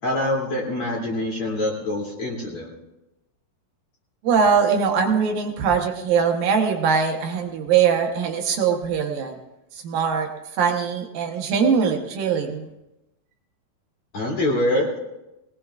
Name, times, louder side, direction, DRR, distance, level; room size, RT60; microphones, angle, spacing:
voice 1, 0.0-2.7 14.1-15.0, left 1 dB, 40° left, -3 dB, 3.6 m, -25 dB
voice 2, 4.2-9.4 9.7-10.3 10.6-12.7, right 6 dB, 75° right, 2 dB, 2.9 m, -21 dB
22.0 x 18.5 x 2.5 m, 0.93 s
omnidirectional pair, 4.2 m